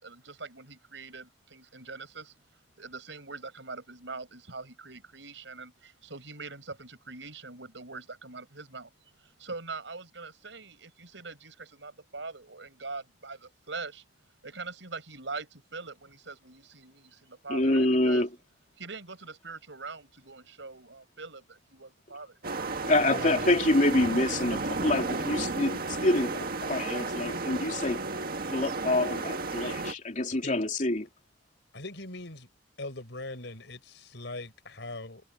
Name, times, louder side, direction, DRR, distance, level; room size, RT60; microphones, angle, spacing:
voice 1, 0.0-2.3 2.8-5.7 6.1-14.0 14.4-18.2 18.8-22.4, right 4 dB, 80° right, 5.5 m, -43 dB
voice 2, 17.5-18.3 22.9-28.0 28.5-31.1, left 1 dB, 45° left, 3.0 m, -26 dB
sound 1, 22.4-29.9, right 3 dB, 55° right, 1.8 m, -33 dB
voice 3, 23.0-23.6 30.4-30.6 31.7-32.5 32.8-35.2, left 2 dB, 70° left, 6.3 m, -41 dB
head